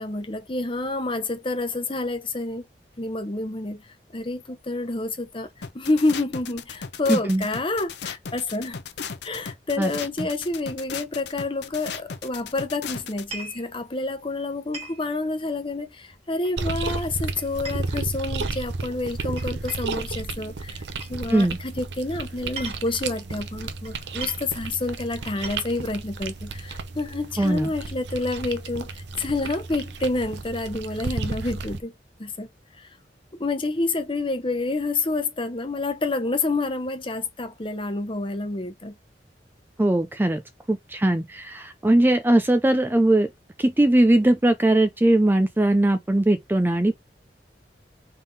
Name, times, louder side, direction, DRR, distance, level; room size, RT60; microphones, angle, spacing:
voice 1, 0.0-2.7 3.0-3.8 4.1-5.5 5.7-8.8 9.2-20.8 21.1-28.9 29.2-31.9 32.2-32.5 32.8-32.9 33.4-38.9, left 2 dB, 30° left, 0.9 m, -28 dB
sound 1, 5.6-13.2, left 6 dB, 70° left, 0.6 m, -36 dB
voice 2, 7.1-7.5 9.8-9.9 21.3-21.6 27.4-27.7 39.8-40.4 40.7-43.3 43.6-47.0, right 1 dB, 10° right, 0.4 m, -20 dB
sound 2, 13.1-13.6 14.7-15.0 16.4-16.8 17.4-18.6 19.4-20.0 21.0-21.2 22.3-23.1 23.8-23.9 24.2-24.5 25.2-25.8, right 3 dB, 35° right, 1.6 m, -39 dB
sound 3, 16.6-31.8, right 3 dB, 75° right, 0.7 m, -33 dB
3.7 x 3.6 x 4.0 m
head